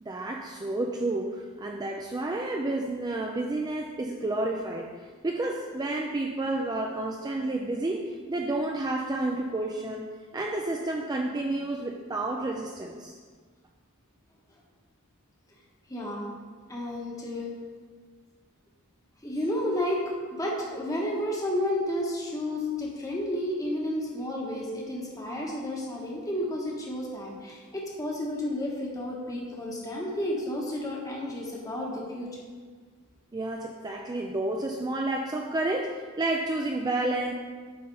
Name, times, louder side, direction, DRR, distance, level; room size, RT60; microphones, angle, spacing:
voice 1, 0.0-4.9 5.2-10.1 10.3-13.1 33.3-37.3, right 2 dB, 20° right, 1 dB, 0.4 m, -30 dB
voice 2, 15.9-16.3 16.7-17.5 19.2-32.4, left 1 dB, 15° left, -2 dB, 1.3 m, -31 dB
8.5 x 4.0 x 5.3 m, 1.6 s
head